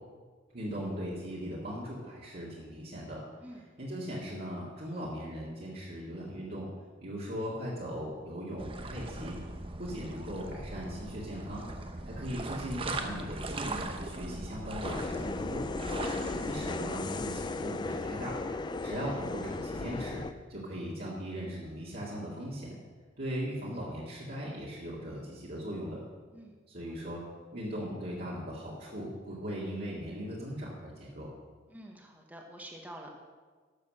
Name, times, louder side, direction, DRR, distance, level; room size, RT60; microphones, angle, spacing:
voice 1, 0.5-3.2 3.8-6.7 7.0-9.4 9.8-11.7 12.2-15.7 16.4-18.4 18.8-20.2 20.5-22.7 23.2-26.0 26.7-27.2 27.5-31.3, equal, 50° right, -7 dB, 2.1 m, -39 dB
voice 2, 3.4-3.7 16.0-16.4 26.3-26.6 26.9-27.0 31.7-33.1, right 1 dB, 10° right, 1 dB, 1.1 m, -48 dB
sound 1, 8.6-16.8, right 2 dB, 25° right, 0.8 m, -39 dB
sound 2, 14.8-20.3, left 3 dB, 20° left, 0.4 m, -36 dB
12.0 x 6.8 x 6.4 m, 1.5 s
head